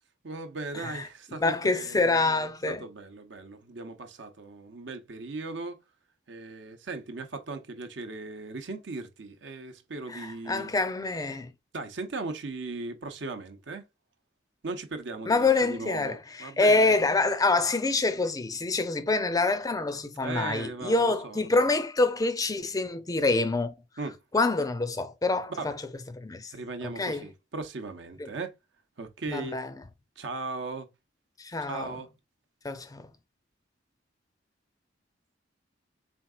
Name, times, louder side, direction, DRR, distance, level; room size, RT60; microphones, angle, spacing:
voice 1, 0.2-5.8 6.3-10.7 11.7-13.9 14.6-17.0 20.2-21.5 24.0-24.2 25.5-25.7 26.5-28.6 29.0-29.6 30.2-30.9 31.6-32.1, right 3 dB, 70° right, 0.8 m, -38 dB
voice 2, 0.7-1.1 1.4-2.8 10.1-11.5 15.3-23.7 24.3-25.8 26.1-26.5 27.0-27.3 28.2-28.3 29.3-29.7 31.4-31.9 32.6-33.1, left 3 dB, 20° left, 0.4 m, -26 dB
4.4 x 3.6 x 2.3 m
head